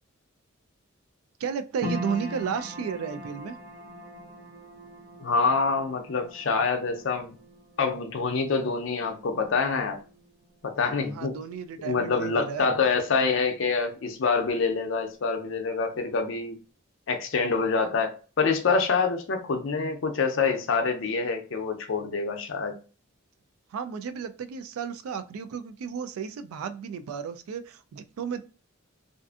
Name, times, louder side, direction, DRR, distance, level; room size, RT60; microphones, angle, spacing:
voice 1, 1.4-3.6 11.1-12.7 23.7-28.4, right 6 dB, 80° right, 10 dB, 0.3 m, -33 dB
sound 1, 1.8-14.2 14.5-15.4 15.9-16.0, equal, 50° right, 0.7 m, -43 dB
voice 2, 5.2-7.3 7.8-10.0 10.6-11.4 11.8-16.6 17.1-22.7, left 4 dB, 60° left, 5 dB, 0.5 m, -26 dB
2.5 x 2.4 x 2.3 m, 0.36 s
head